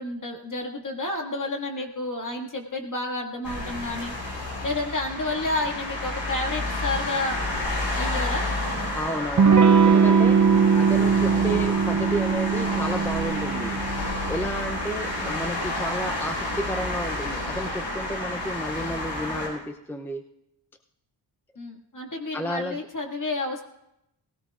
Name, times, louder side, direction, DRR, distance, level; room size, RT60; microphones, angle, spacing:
voice 1, 0.0-7.4 8.0-8.5 21.6-23.6, left 2 dB, 40° left, 1 dB, 2.2 m, -30 dB
sound 1, 3.4-19.5, left 2 dB, 65° left, 5.8 m, -30 dB
voice 2, 8.9-10.4 10.8-13.8 14.3-20.2 22.3-22.8, equal, 5° left, 5 dB, 0.6 m, -32 dB
Electric guitar / Strum, 9.4-14.7, right 6 dB, 40° right, 0.7 m, -20 dB
19.5 x 16.5 x 2.5 m, 0.83 s
wide cardioid pair, 95°, 46 cm